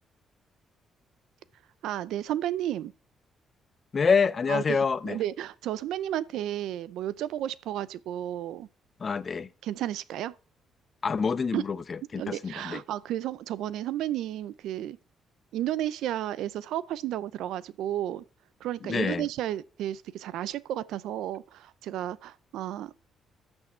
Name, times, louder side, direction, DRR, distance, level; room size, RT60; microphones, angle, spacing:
voice 1, 1.8-2.9 4.5-4.8 5.0-8.7 9.6-10.3 11.5-11.6 12.1-15.0 15.5-18.2 18.6-22.9, right 12 dB, 85° right, 0.5 m, -32 dB
voice 2, 3.9-5.2 9.0-9.5 11.0-12.8 18.8-19.3, left 5 dB, 40° left, 0.6 m, -27 dB
13.5 x 6.3 x 4.4 m
cardioid pair, 90°, 0 cm